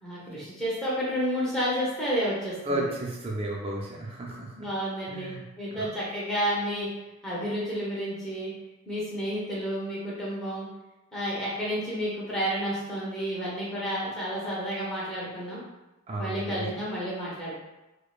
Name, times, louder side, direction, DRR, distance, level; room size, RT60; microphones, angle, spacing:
voice 1, 0.0-2.8 4.6-6.9 7.2-8.5 8.9-10.7 11.1-15.6 16.2-17.6, equal, ahead, -9 dB, 0.9 m, -31 dB
voice 2, 2.6-4.7 5.1-5.9 16.1-16.7, right 1 dB, 25° right, -2 dB, 0.5 m, -33 dB
4.7 x 2.1 x 2.4 m, 1.0 s
head